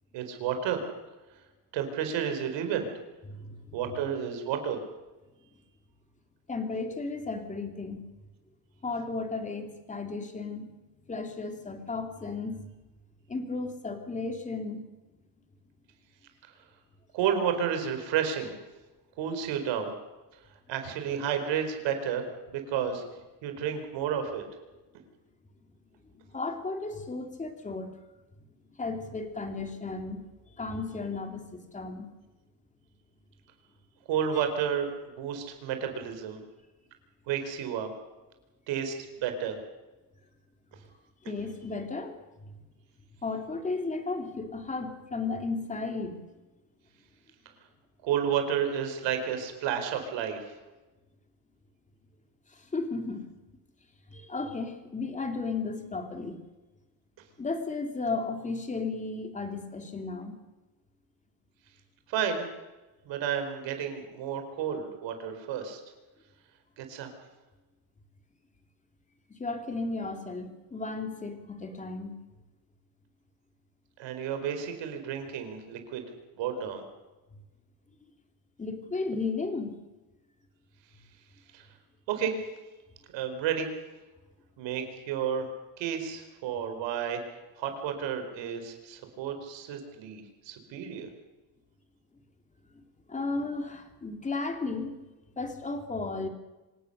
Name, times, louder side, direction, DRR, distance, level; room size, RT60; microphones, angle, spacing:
voice 1, 0.1-0.8 1.7-2.9 3.7-4.8 17.1-18.5 19.2-19.9 20.7-23.0 23.4-24.4 34.1-36.4 37.3-37.9 38.7-38.9 39.2-39.6 48.0-50.6 62.1-62.4 63.1-65.8 66.8-67.1 74.0-76.0 76.4-76.8 81.5-81.6 82.1-82.3 83.1-83.7 84.6-85.5 85.8-87.2 87.6-91.1, right 8 dB, 65° right, 6 dB, 4.6 m, -31 dB
voice 2, 3.3-3.8 6.5-8.0 8.8-10.7 11.1-12.7 13.3-14.8 26.3-27.9 28.8-30.2 30.6-32.1 41.3-42.1 42.4-42.5 43.2-46.2 52.7-53.3 54.1-56.4 57.4-60.4 69.3-72.1 78.6-79.7 93.1-94.9 95.4-96.3, left 3 dB, 15° left, 5 dB, 2.8 m, -34 dB
26.0 x 18.5 x 6.7 m, 1.1 s
cardioid pair, 145°, 47 cm